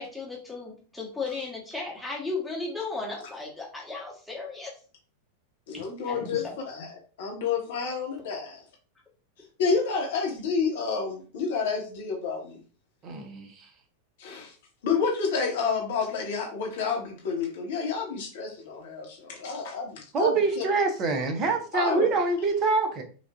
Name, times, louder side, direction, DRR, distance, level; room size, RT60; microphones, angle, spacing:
voice 1, 0.0-4.7 5.7-6.6, left 3 dB, 5° left, -4 dB, 1.2 m, -35 dB
voice 2, 5.7-6.9 7.2-8.6 9.6-12.6 14.2-14.5 14.8-20.6 21.7-22.1, left 5 dB, 55° left, 0 dB, 1.2 m, -29 dB
voice 3, 13.0-13.7 20.1-23.0, right 4 dB, 30° right, 5 dB, 0.8 m, -25 dB
5.0 x 2.5 x 2.3 m, 0.38 s
figure-of-eight pair, 90°, 0 cm